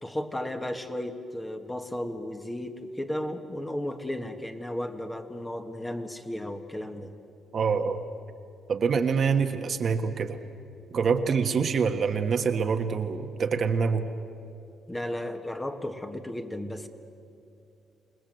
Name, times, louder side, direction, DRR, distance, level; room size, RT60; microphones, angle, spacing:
voice 1, 0.0-7.1 14.9-16.9, left 1 dB, 15° left, 5 dB, 1.7 m, -34 dB
voice 2, 7.5-8.0 8.7-10.4 10.9-14.0, right 5 dB, 50° right, 6 dB, 1.5 m, -25 dB
28.5 x 19.5 x 7.9 m, 2.6 s
cardioid pair, 90°, 0 cm